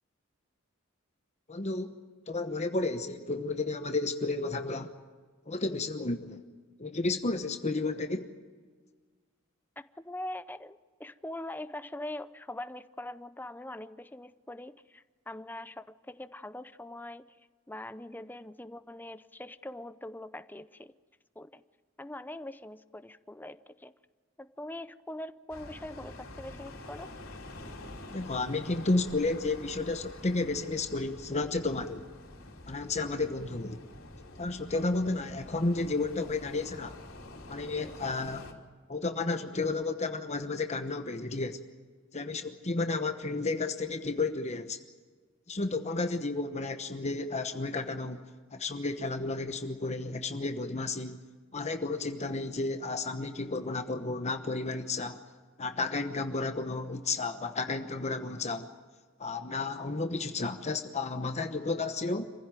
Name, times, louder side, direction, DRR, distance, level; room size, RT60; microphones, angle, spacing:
voice 1, 1.5-1.9 2.3-4.9 5.5-6.4 6.8-8.3 28.1-32.0 32.7-33.8 34.4-37.0 37.5-38.5 38.9-41.6 42.1-44.8 45.5-48.2 48.5-51.2 51.5-55.2 55.6-58.7 59.2-62.3, left 3 dB, 35° left, 7 dB, 1.0 m, -32 dB
voice 2, 10.0-17.4 17.7-20.9 21.4-21.6 22.0-23.9 24.4-27.1, left 1 dB, 10° left, 13 dB, 0.6 m, -42 dB
sound 1, 25.5-38.5, left 1 dB, 90° left, 3.1 m, -47 dB
27.0 x 16.0 x 9.0 m, 1.5 s
head